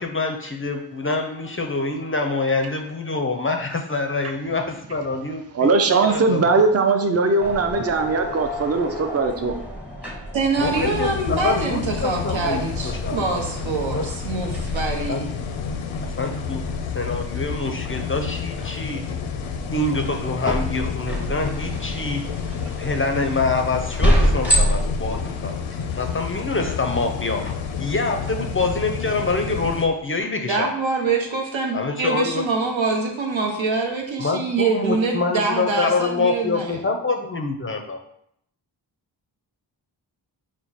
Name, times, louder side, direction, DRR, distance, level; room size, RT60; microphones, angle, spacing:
voice 1, 0.0-6.6 10.5-13.2 13.9-14.1 15.1-15.3 16.2-16.7 16.9-19.0 19.7-22.2 22.8-25.6 25.9-27.4 27.8-30.7 31.7-32.5 34.2-38.0, left 3 dB, 30° left, 4 dB, 0.4 m, -26 dB
voice 2, 5.5-9.5 21.4-21.5, right 3 dB, 35° right, 6 dB, 0.5 m, -20 dB
sound 1, 7.4-26.3, equal, 5° right, 0.7 m, -29 dB
voice 3, 10.3-15.3 30.5-36.8, right 4 dB, 80° right, 1 dB, 0.9 m, -24 dB
sound 2, 10.6-29.9, left 7 dB, 85° left, 0.5 m, -30 dB
4.5 x 2.1 x 4.0 m, 0.71 s
wide cardioid pair, 65°, 46 cm